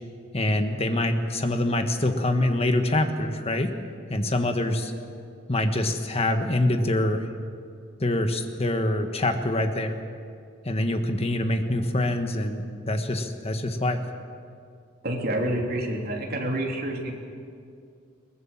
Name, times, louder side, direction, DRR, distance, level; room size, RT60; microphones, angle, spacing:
voice 1, 0.3-3.7 4.1-4.9 5.5-7.2 8.0-10.0 10.6-14.0, left 1 dB, 30° left, 6 dB, 1.5 m, -25 dB
voice 2, 15.0-17.1, right 1 dB, 50° right, 0 dB, 3.2 m, -28 dB
22.5 x 19.0 x 7.4 m, 2.3 s
head